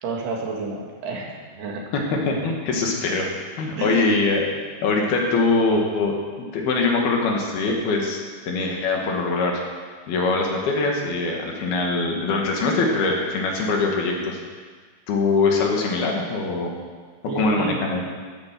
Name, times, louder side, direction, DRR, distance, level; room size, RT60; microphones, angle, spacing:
voice 1, 0.0-1.9 3.8-4.2 17.3-17.8, right 4 dB, 80° right, -1 dB, 4.1 m, -30 dB
voice 2, 1.9-3.3 3.6-4.5 4.8-6.2 6.5-8.2 8.5-9.6 10.1-14.4 15.1-16.7 17.4-18.0, left 3 dB, 70° left, 0 dB, 3.8 m, -22 dB
13.5 x 10.0 x 7.5 m, 1.5 s
omnidirectional pair, 4.6 m